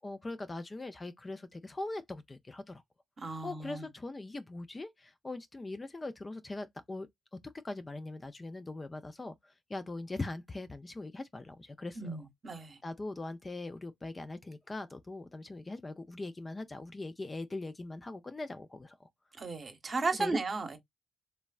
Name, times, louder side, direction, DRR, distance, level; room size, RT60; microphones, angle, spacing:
voice 1, 0.0-2.8 3.4-7.1 7.6-12.2 12.8-19.1 20.1-20.4, left 2 dB, 20° left, 0.3 m, -41 dB
voice 2, 3.2-3.9 12.0-12.8 19.4-20.8, right 3 dB, 35° right, 0.9 m, -35 dB
3.1 x 2.1 x 2.3 m
cardioid pair, 90°, 0 cm